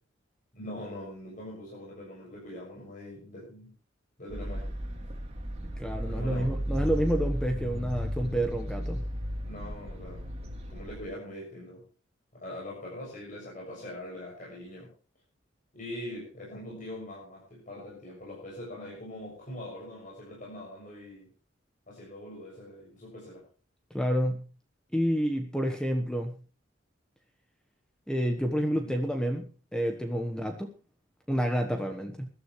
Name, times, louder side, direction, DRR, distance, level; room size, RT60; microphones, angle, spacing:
voice 1, 0.5-3.7 4.2-4.7 6.1-6.6 9.4-10.2 10.7-11.8 12.3-14.9 15.7-21.3 21.9-23.4 28.7-29.0, left 1 dB, 45° left, -4 dB, 6.8 m, -42 dB
sound 1, 4.3-11.0, equal, 35° right, 3.2 m, -34 dB
voice 2, 5.8-9.0 23.9-24.5 24.9-26.4 28.1-30.7 31.3-32.3, equal, 5° left, 4 dB, 1.3 m, -29 dB
21.5 x 13.0 x 3.2 m, 0.35 s
head